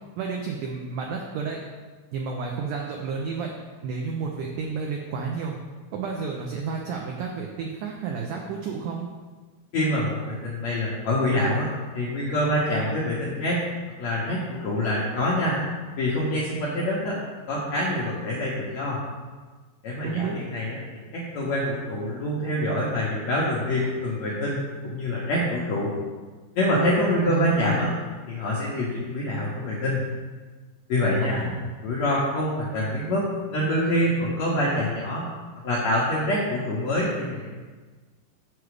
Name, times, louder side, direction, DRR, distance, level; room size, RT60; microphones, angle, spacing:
voice 1, 0.2-1.6 2.1-3.5 3.8-5.6 5.9-9.1 20.0-20.4 27.3-27.8 31.2-31.7, right 5 dB, 90° right, 0 dB, 1.8 m, -31 dB
voice 2, 9.7-13.6 14.0-15.6 16.0-17.2 17.5-19.0 19.8-25.9 26.5-27.9 28.3-30.0 30.9-31.4 31.8-35.3 35.6-37.5, left 1 dB, 75° left, -6 dB, 1.6 m, -25 dB
6.9 x 6.0 x 4.8 m, 1.4 s
omnidirectional pair, 4.5 m